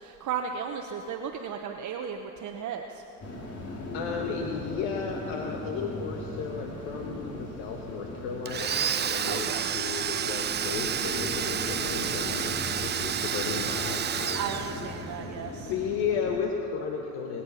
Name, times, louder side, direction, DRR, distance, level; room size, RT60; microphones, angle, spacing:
voice 1, 0.0-3.0 9.2-9.7 11.4-11.7 14.3-15.7, right 7 dB, 40° right, 4 dB, 1.0 m, -35 dB
sound 1, 3.2-16.4, left 1 dB, 30° left, 3.1 m, -38 dB
voice 2, 3.9-14.4 15.7-17.4, left 6 dB, 65° left, 2 dB, 1.5 m, -34 dB
Domestic sounds home sounds, 8.5-15.2, right 9 dB, 25° right, 0.6 m, -30 dB
23.0 x 8.9 x 5.7 m, 2.8 s
hypercardioid pair, 80°, 46 cm